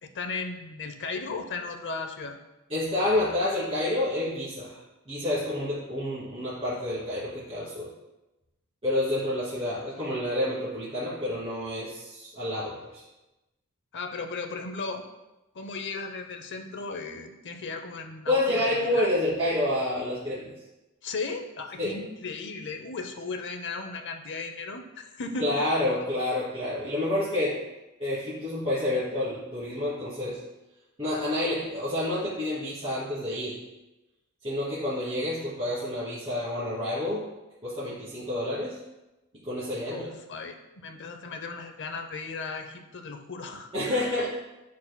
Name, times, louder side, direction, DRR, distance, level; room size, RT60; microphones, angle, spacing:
voice 1, 0.0-2.3 13.9-15.0 15.5-19.1 21.0-25.7 26.0-26.1 39.9-44.2, left 4 dB, 55° left, 6 dB, 0.7 m, -36 dB
voice 2, 2.7-4.8 5.1-7.9 8.8-13.0 18.3-20.5 21.8-21.9 25.4-27.6 28.0-30.4 31.0-33.6 34.4-37.2 37.6-38.8 39.4-40.1 43.7-44.3, left 1 dB, 25° right, -12 dB, 2.4 m, -29 dB
12.5 x 4.8 x 2.2 m, 1.0 s
head